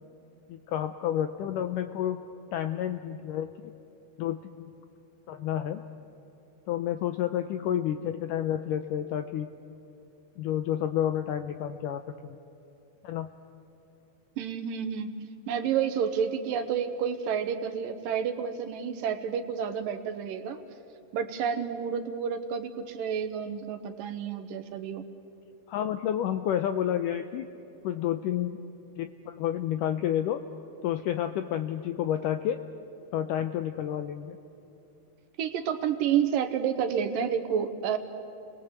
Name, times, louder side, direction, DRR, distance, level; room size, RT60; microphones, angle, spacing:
voice 1, 0.5-2.2 2.5-3.7 4.2-4.7 5.3-5.8 6.7-9.5 10.4-12.4 13.0-13.3 25.7-27.5 27.8-28.6 29.0-30.4 30.8-32.6 33.1-34.4, left 10 dB, 80° left, 8 dB, 1.9 m, -30 dB
voice 2, 14.4-15.2 15.5-20.6 21.1-25.0 35.4-38.0, right 8 dB, 70° right, 9 dB, 2.4 m, -30 dB
30.0 x 20.5 x 8.1 m, 2.9 s
omnidirectional pair, 4.5 m